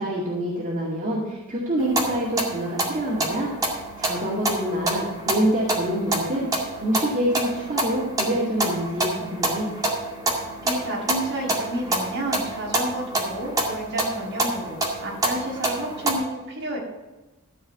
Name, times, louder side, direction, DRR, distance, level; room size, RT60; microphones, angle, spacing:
voice 1, 0.0-3.5 4.0-6.5 6.8-9.7, equal, 35° right, -5 dB, 2.2 m, -26 dB
sound 1, 1.8-16.1, right 1 dB, 15° right, 2.1 m, -28 dB
voice 2, 10.6-16.8, right 1 dB, 50° right, -3 dB, 5.1 m, -31 dB
14.0 x 4.8 x 8.1 m, 1.1 s
head